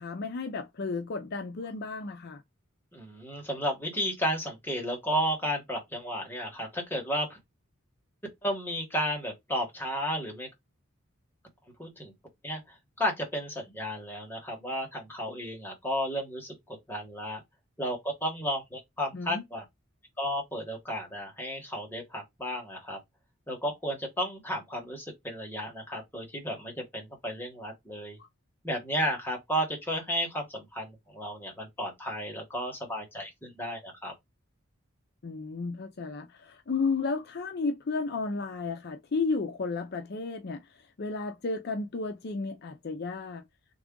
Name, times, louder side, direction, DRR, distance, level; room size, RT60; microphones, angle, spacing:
voice 1, 0.0-2.4 19.1-19.4 28.2-28.3 35.2-43.4, left 4 dB, 50° left, 0.5 m, -33 dB
voice 2, 2.9-7.4 8.4-10.5 11.8-12.1 12.4-17.4 17.8-19.6 20.2-23.0 23.5-28.2 28.6-34.1, equal, 10° left, 1.2 m, -33 dB
3.5 x 2.4 x 3.7 m
head